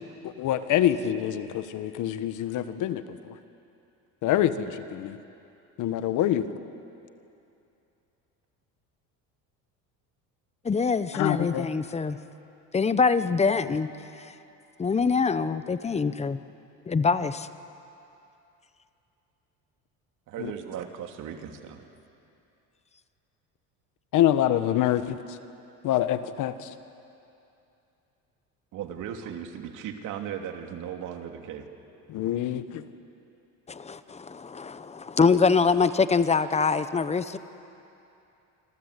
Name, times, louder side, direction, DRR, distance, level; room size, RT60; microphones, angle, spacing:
voice 1, 0.2-3.3 4.2-5.2 5.8-6.5 11.1-11.7 20.4-20.5 24.1-25.4 25.8-26.7 32.1-32.8, left 11 dB, 60° left, 11 dB, 1.4 m, -26 dB
voice 2, 10.6-12.2 12.7-13.9 14.2-14.3 14.8-16.4 16.9-17.5 33.7-37.4, left 5 dB, 20° left, 13 dB, 1.0 m, -24 dB
voice 3, 20.3-21.9 28.7-31.7, right 9 dB, 60° right, 4 dB, 2.8 m, -37 dB
27.0 x 26.5 x 8.3 m, 2.8 s
cardioid pair, 120°, 34 cm